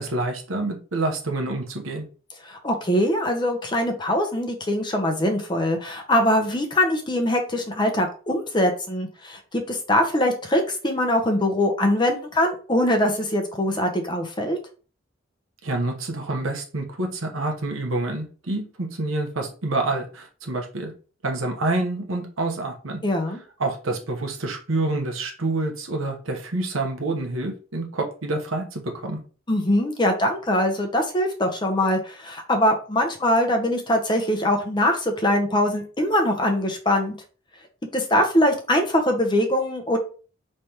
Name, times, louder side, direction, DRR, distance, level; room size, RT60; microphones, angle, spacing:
voice 1, 0.0-2.1 15.6-20.9 21.2-23.0 23.6-29.2, right 2 dB, 85° right, 2 dB, 1.1 m, -27 dB
voice 2, 2.4-14.6 23.0-23.4 29.5-37.1 37.9-40.0, left 1 dB, 20° left, 4 dB, 0.7 m, -22 dB
5.0 x 3.3 x 2.9 m, 0.37 s
head